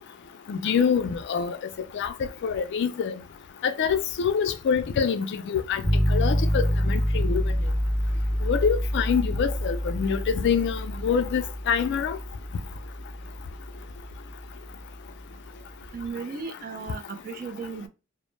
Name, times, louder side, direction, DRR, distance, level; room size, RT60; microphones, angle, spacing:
voice 1, 0.5-1.6 1.9-2.1 2.4-3.1 3.6-5.8 6.1-7.4 8.4-12.2, left 6 dB, 55° left, 0.3 m, -25 dB
sound 1, 5.8-15.7, equal, 75° right, 0.9 m, -27 dB
voice 2, 15.9-17.9, right 5 dB, 45° right, 0.4 m, -35 dB
2.0 x 2.0 x 3.1 m
head